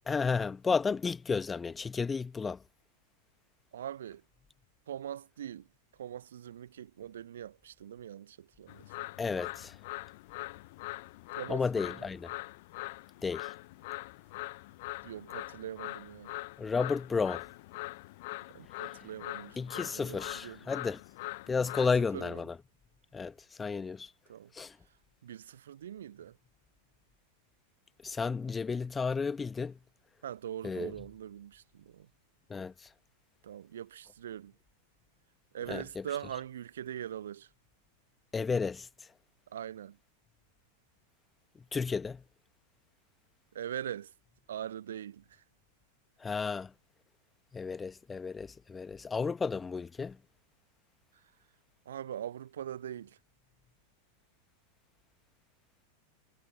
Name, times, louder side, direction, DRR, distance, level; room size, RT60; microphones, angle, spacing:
voice 1, 0.1-2.6 9.2-9.8 11.5-12.3 13.2-13.5 16.6-17.4 19.6-21.0 21.5-22.6 23.1-24.1 24.5-24.8 28.0-29.8 30.6-30.9 32.5-32.9 35.7-36.0 38.3-38.9 41.7-42.2 46.2-46.7 47.5-50.2, left 5 dB, 15° left, 1.6 m, -32 dB
voice 2, 3.7-4.2 4.9-5.7 6.0-9.1 11.4-12.1 15.0-16.4 18.5-20.6 22.1-22.4 24.3-24.5 25.2-26.4 30.2-32.1 33.4-34.5 35.5-37.5 39.5-40.0 43.5-44.1 44.5-45.4 51.9-53.2, right 10 dB, 65° right, 0.7 m, -42 dB
sound 1, 8.7-22.0, left 21 dB, 50° left, 0.7 m, -43 dB
figure-of-eight pair, 90°, 0 cm